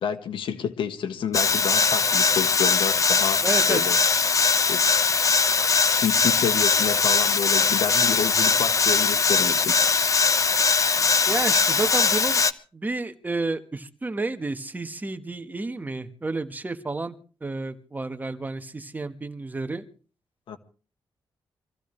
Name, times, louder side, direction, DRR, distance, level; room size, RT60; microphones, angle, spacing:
voice 1, 0.0-3.4 3.7-4.0 4.7-4.8 5.8-9.8 20.5-20.6, left 7 dB, 85° left, 1.5 m, -29 dB
sound 1, 1.3-12.5, left 5 dB, 40° left, 0.9 m, -21 dB
voice 2, 3.4-3.8 11.2-12.4 12.7-17.1 17.4-19.8, right 3 dB, 20° right, 1.4 m, -30 dB
25.0 x 15.0 x 3.3 m
cardioid pair, 115°, 9 cm